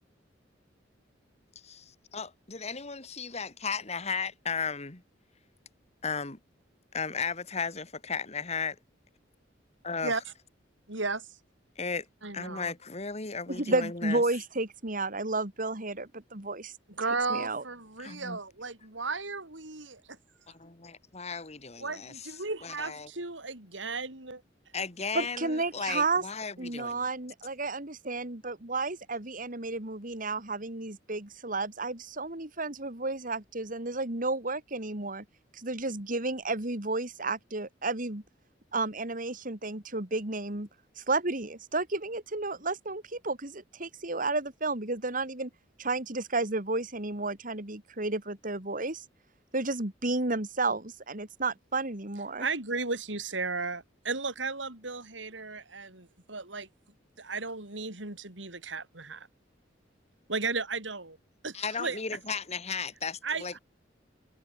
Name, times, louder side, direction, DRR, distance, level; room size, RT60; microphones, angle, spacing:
voice 1, 1.6-5.0 6.0-6.4 6.9-8.7 9.8-10.2 11.8-12.1 12.3-14.2 18.0-18.4 20.5-22.3 22.6-23.1 24.7-27.0 61.5-63.6, left 5 dB, 35° left, 2.1 m, -35 dB
voice 2, 10.9-11.4 12.2-12.7 17.0-20.2 21.8-24.4 52.4-56.7 57.2-59.3 60.3-61.2 61.4-62.0 63.2-63.6, right 4 dB, 85° right, 5.8 m, -35 dB
voice 3, 13.5-16.7 17.3-17.6 25.1-26.2 26.6-35.2 35.5-38.2 38.7-40.7 41.0-45.5 45.8-49.0 49.5-52.5, right 3 dB, 45° right, 3.0 m, -32 dB
head